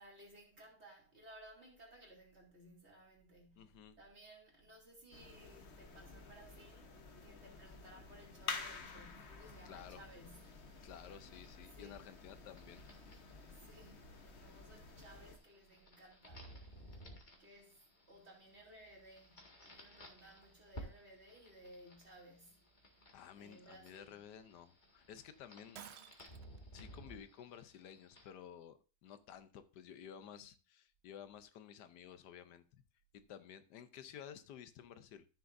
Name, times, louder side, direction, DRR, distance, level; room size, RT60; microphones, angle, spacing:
voice 1, 0.0-10.8 11.8-12.0 13.5-17.1 17.4-17.8 18.1-22.7 23.4-24.2 30.2-30.4, right 1 dB, 40° right, 3.0 m, -59 dB
voice 2, 3.6-4.0 9.6-10.0 10.8-12.9 14.4-14.5 23.1-25.8 26.7-32.8 33.1-35.3, left 9 dB, 85° left, 1.4 m, -54 dB
sound 1, 5.1-15.4, left 4 dB, 45° left, 1.2 m, -50 dB
sound 2, 9.4-28.3, equal, 30° left, 1.9 m, -58 dB
Shatter, 25.7-26.6, right 10 dB, 80° right, 0.5 m, -53 dB
13.5 x 6.9 x 2.6 m
omnidirectional pair, 1.7 m